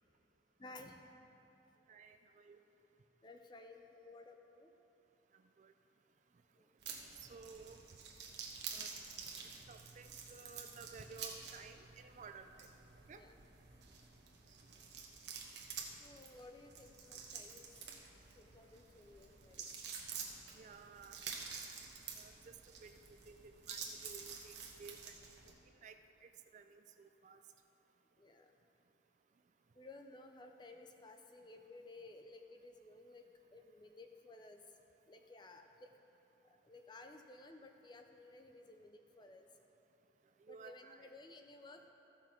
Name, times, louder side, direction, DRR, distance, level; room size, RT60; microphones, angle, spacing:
voice 1, 0.6-1.2 3.2-4.7 6.5-6.7 13.1-13.4 13.9-14.0 16.0-17.7 18.4-19.7 28.2-28.6 29.7-33.2 33.5-34.6 35.1-35.9 36.4-39.5 40.5-41.9, left 2 dB, 25° left, 5 dB, 0.5 m, -56 dB
voice 2, 1.9-2.6 5.3-5.7 7.1-8.0 8.7-9.0 9.7-12.7 13.1-13.2 20.4-21.2 22.2-25.3 25.8-27.4 40.4-41.1, right 5 dB, 40° right, 8 dB, 0.3 m, -56 dB
sound 1, 6.8-25.5, right 6 dB, 65° right, 1.1 m, -49 dB
14.5 x 6.1 x 4.4 m, 3.0 s
head